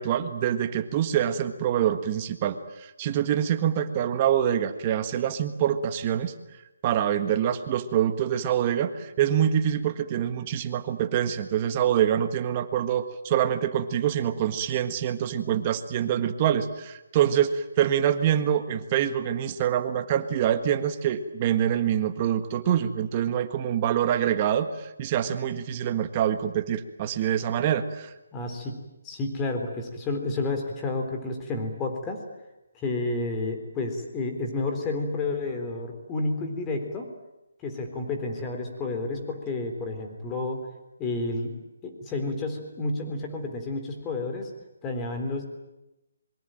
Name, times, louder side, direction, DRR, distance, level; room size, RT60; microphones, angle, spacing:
voice 1, 0.0-6.3 6.8-28.1, right 10 dB, 25° right, 9 dB, 1.6 m, -25 dB
voice 2, 28.3-28.8 29.0-32.2 32.8-37.1 37.6-40.6 41.0-41.5 41.8-44.5 44.8-45.4, left 2 dB, 15° left, 4 dB, 3.8 m, -30 dB
26.5 x 23.5 x 9.2 m, 0.95 s
hypercardioid pair, 165°, 0 cm